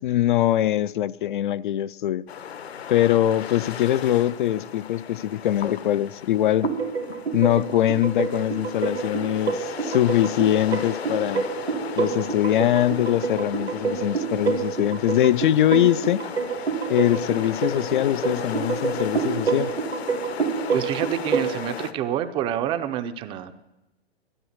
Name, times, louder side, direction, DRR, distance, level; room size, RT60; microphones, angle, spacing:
voice 1, 0.0-2.2 2.9-6.7 7.3-11.5 12.0-16.2 16.9-19.7, left 12 dB, 50° left, 0.4 m, -22 dB
sound 1, 2.3-21.9, left 8 dB, 75° left, 1.3 m, -36 dB
sound 2, 6.6-21.5, right 6 dB, 80° right, 1.8 m, -28 dB
voice 2, 20.7-23.5, right 10 dB, 15° right, 0.5 m, -27 dB
13.5 x 12.5 x 7.9 m
hypercardioid pair, 135°, 32 cm